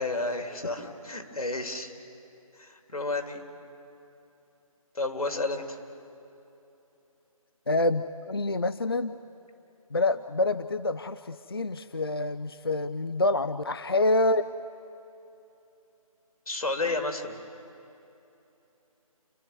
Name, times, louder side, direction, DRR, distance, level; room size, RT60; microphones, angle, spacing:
voice 1, 0.0-1.9 2.5-3.5 4.9-5.8 16.5-17.4, left 2 dB, 85° left, 5 dB, 3.2 m, -31 dB
voice 2, 7.7-9.2 9.9-14.4, left 2 dB, 40° left, 12 dB, 0.4 m, -27 dB
29.5 x 12.0 x 9.5 m, 2.9 s
figure-of-eight pair, 175°, 19 cm